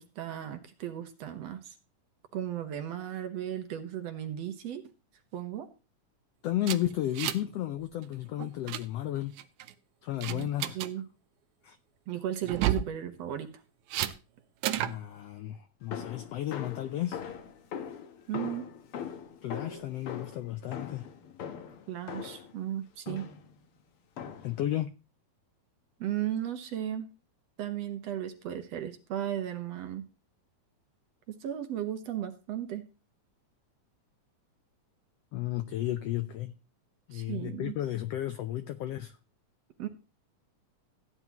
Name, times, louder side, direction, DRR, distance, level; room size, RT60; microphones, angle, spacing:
voice 1, 0.0-1.8 2.3-4.8 5.3-5.7 10.3-11.1 12.1-13.6 18.3-18.7 21.9-23.3 26.0-27.1 27.6-30.1 31.4-32.9 37.1-37.8 39.8-39.9, right 11 dB, 65° right, 2.0 m, -35 dB
voice 2, 6.4-9.4 10.0-10.8 11.6-11.8 14.7-17.2 19.4-21.1 24.4-24.9 35.3-36.5 37.1-39.2, left 13 dB, 85° left, 1.4 m, -33 dB
sound 1, 6.6-7.6 7.8-8.0 8.4-8.8 9.4-9.7 10.2-10.9 12.4-12.9 13.9-14.1 14.6-15.0, right 12 dB, 80° right, 2.2 m, -31 dB
sound 2, 15.9-22.6 23.1-23.5 24.2-24.6, left 7 dB, 60° left, 1.6 m, -41 dB
16.0 x 9.5 x 3.0 m
omnidirectional pair, 3.6 m